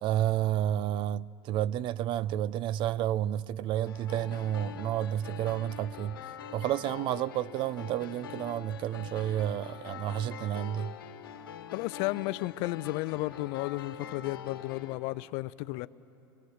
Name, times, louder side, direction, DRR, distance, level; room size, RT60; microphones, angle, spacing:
voice 1, 0.0-6.2 6.5-10.9, right 12 dB, 45° right, 0.4 m, -30 dB
sound 1, 3.9-14.9, left 8 dB, 85° left, 1.3 m, -44 dB
voice 2, 11.7-15.9, left 20 dB, 60° left, 0.5 m, -33 dB
23.5 x 22.0 x 6.5 m
hypercardioid pair, 100°, 11 cm